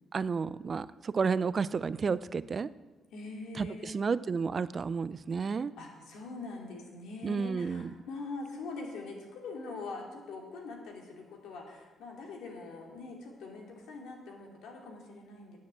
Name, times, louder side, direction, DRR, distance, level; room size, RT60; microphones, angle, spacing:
voice 1, 0.1-2.7 3.6-5.7 7.2-7.9, right 5 dB, 40° right, 17 dB, 0.4 m, -31 dB
voice 2, 3.1-4.0 5.4-15.6, left 3 dB, 85° left, 1 dB, 2.6 m, -43 dB
9.7 x 7.3 x 8.4 m, 1.2 s
cardioid pair, 90°, 0 cm